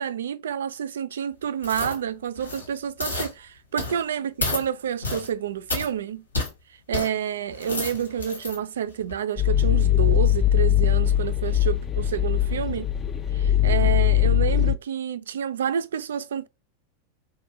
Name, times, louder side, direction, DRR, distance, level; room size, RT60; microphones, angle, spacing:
voice 1, 0.0-6.2 6.9-12.9 13.3-16.5, right 8 dB, 65° right, 0.3 m, -29 dB
sound 1, 1.6-2.0 2.4-2.7 3.0-3.3 3.8-4.0 4.4-4.6 5.0-5.3 5.7-5.9 6.3-6.5 6.9-7.1 7.5-8.6 9.0-9.1, left 3 dB, 80° left, 1.1 m, -30 dB
sound 2, 9.4-14.7, left 11 dB, 25° left, 0.3 m, -21 dB
4.0 x 2.6 x 2.7 m
figure-of-eight pair, 90°, 0 cm